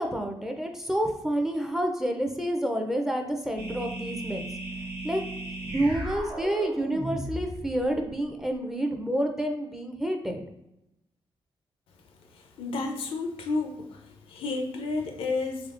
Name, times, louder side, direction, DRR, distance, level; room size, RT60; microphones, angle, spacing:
voice 1, 0.0-4.4 5.0-5.2 5.6-10.4, right 1 dB, 5° right, 3 dB, 0.4 m, -29 dB
sound 1, 3.6-8.2, right 2 dB, 60° right, 1.1 m, -36 dB
voice 2, 12.6-14.0 14.3-15.7, left 3 dB, 85° left, 4 dB, 0.5 m, -31 dB
3.5 x 3.2 x 2.4 m, 0.86 s
cardioid pair, 105°, 9 cm